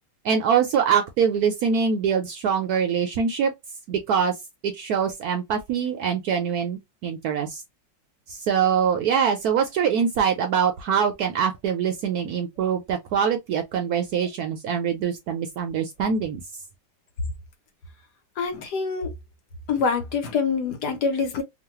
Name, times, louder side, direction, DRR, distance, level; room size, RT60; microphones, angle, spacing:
voice 1, 0.2-3.5 3.9-4.3 4.6-7.6 8.3-16.4, right 7 dB, 70° right, 0.9 m, -24 dB
voice 2, 18.4-19.1 19.7-21.4, left 5 dB, 65° left, 1.3 m, -25 dB
3.1 x 2.2 x 2.8 m
omnidirectional pair, 2.0 m